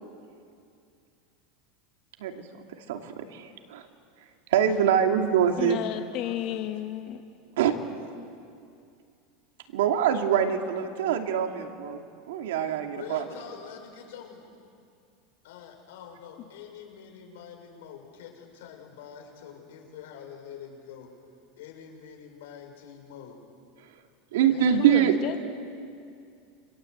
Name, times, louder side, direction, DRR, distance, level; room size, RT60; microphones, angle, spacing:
voice 1, 2.9-3.8 4.5-5.8 7.6-7.7 9.7-13.3 24.3-25.4, right 9 dB, 90° right, 4 dB, 2.7 m, -24 dB
voice 2, 4.8-6.7 12.9-14.5 15.4-21.1 21.6-23.4 24.4-24.8, left 8 dB, 85° left, 2 dB, 6.4 m, -46 dB
voice 3, 5.6-7.2 24.8-25.4, left 12 dB, 45° left, 6 dB, 1.5 m, -32 dB
28.5 x 25.5 x 8.2 m, 2.4 s
supercardioid pair, 150°, 0 cm